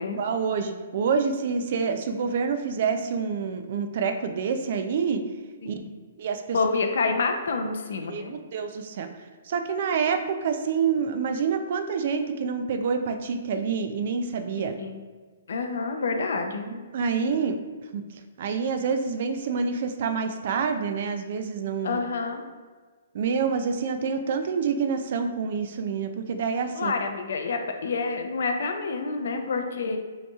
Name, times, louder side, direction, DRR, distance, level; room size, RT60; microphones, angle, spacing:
voice 1, 0.2-5.2 5.6-5.7 6.2-6.6 8.1-9.1 9.5-14.8 16.7-17.6 17.9-18.0 18.4-22.0 23.1-26.9 29.9-30.0, right 5 dB, 40° right, 7 dB, 0.3 m, -27 dB
voice 2, 6.5-8.3 14.6-15.0 15.5-16.6 21.8-22.4 26.8-30.0, left 4 dB, 60° left, 5 dB, 0.5 m, -28 dB
5.3 x 2.9 x 2.3 m, 1.4 s
hypercardioid pair, 175°, 0 cm